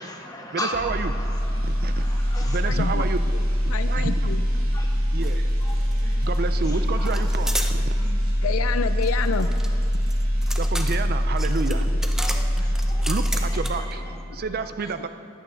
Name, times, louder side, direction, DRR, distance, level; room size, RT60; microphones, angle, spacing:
voice 1, 0.0-2.6 3.8-4.0 4.7-4.9 5.6-7.3 7.9-8.1 9.4-9.7 10.4-10.6 10.9-11.0 12.2-13.1 13.4-14.5 14.8-14.9, left 2 dB, 20° left, 0 dB, 1.3 m, -38 dB
voice 2, 0.5-1.1 1.6-2.0 2.5-3.2 3.7-4.2 5.1-5.5 6.2-7.9 10.6-11.9 13.0-14.0 14.3-15.1, right 5 dB, 50° right, 11 dB, 0.4 m, -30 dB
sound 1, 0.7-13.9 14.2-14.4, equal, 80° right, 2.9 m, -23 dB
voice 3, 2.6-3.1 3.3-4.4 8.4-9.5 11.7-12.0, left 6 dB, 85° left, 12 dB, 0.5 m, -29 dB
sound 2, 5.2-5.4 5.6-6.4 7.1-7.7 9.0-13.9, right 1 dB, ahead, 0.6 m, -33 dB
14.5 x 11.0 x 3.8 m, 2.5 s
head